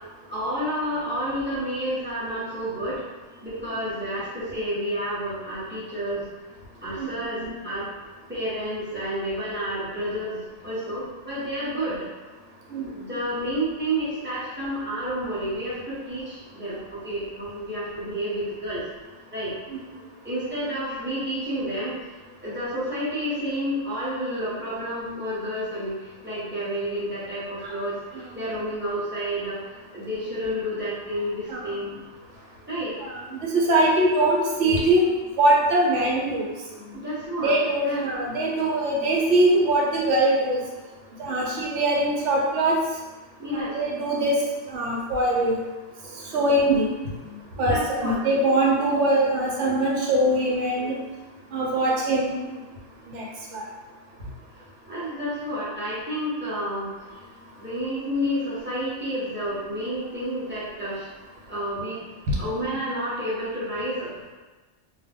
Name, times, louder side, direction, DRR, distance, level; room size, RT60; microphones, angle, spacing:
voice 1, 0.3-3.0 3.4-6.3 6.8-7.9 8.3-12.1 12.8-18.8 19.3-19.6 20.2-22.0 22.4-32.1 32.7-32.9 36.8-37.6 37.8-38.3 43.4-43.8 47.2-48.2 54.9-56.9 57.6-61.1 61.5-62.1 62.4-64.1, equal, 10° right, -10 dB, 0.7 m, -30 dB
voice 2, 33.0-35.1 35.4-36.5 37.4-40.6 41.2-42.7 43.5-44.4 44.7-45.6 46.3-46.8 47.6-50.9 51.5-52.4 53.1-53.2 53.5-53.6 62.3-62.4, right 1 dB, 75° right, -2 dB, 1.0 m, -22 dB
2.3 x 2.1 x 3.4 m, 1.2 s
omnidirectional pair, 1.3 m